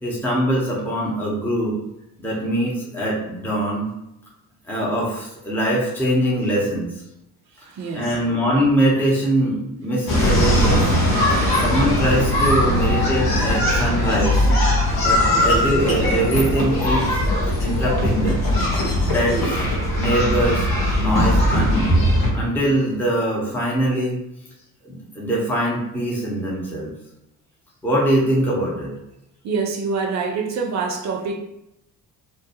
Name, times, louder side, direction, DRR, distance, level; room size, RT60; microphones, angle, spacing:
voice 1, 0.0-1.8 2.2-3.9 4.7-6.9 7.9-10.9 11.6-14.5 15.0-17.2 17.6-18.5 19.1-19.4 20.0-20.7 21.0-22.0 22.3-24.2 24.8-26.9 27.8-28.9, right 1 dB, 5° left, -5 dB, 0.9 m, -22 dB
voice 2, 7.5-8.3 10.1-10.5 12.6-13.7 15.3-15.5 19.3-19.6 29.4-31.4, right 4 dB, 35° right, 2 dB, 0.5 m, -28 dB
sound 1, 10.1-22.3, left 1 dB, 45° left, 1.1 m, -19 dB
Domestic sounds home sounds, 13.1-21.3, equal, 65° left, 1.4 m, -35 dB
2.6 x 2.2 x 2.9 m, 0.83 s
figure-of-eight pair, 45°, 50 cm